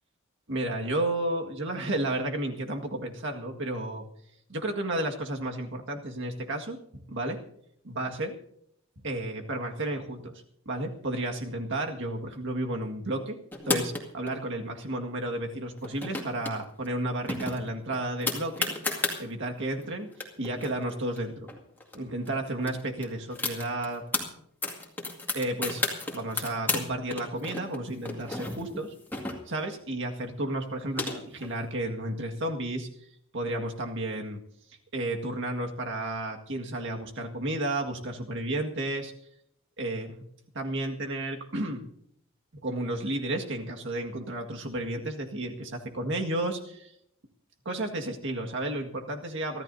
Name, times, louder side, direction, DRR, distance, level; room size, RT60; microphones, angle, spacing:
voice 1, 0.5-4.0 4.5-6.8 7.1-7.4 7.8-8.3 9.0-10.3 10.7-13.4 13.7-18.7 19.2-20.1 20.4-21.5 21.9-24.0 25.3-25.8 26.1-28.9 29.5-32.9 33.3-34.4 34.9-39.1 39.8-40.2 40.5-41.9 42.6-46.9 47.7-49.6, right 1 dB, 60° right, 3 dB, 1.9 m, -32 dB
sound 1, 13.5-14.3 15.8-16.5 16.8-16.9 17.3-19.2 19.8-19.9 20.1-22.0 22.3-22.4 22.6-24.2 24.6-26.8 27.1-29.7 30.5-31.5, left 2 dB, 10° left, 2.2 m, -32 dB
24.5 x 13.5 x 2.8 m, 0.70 s
head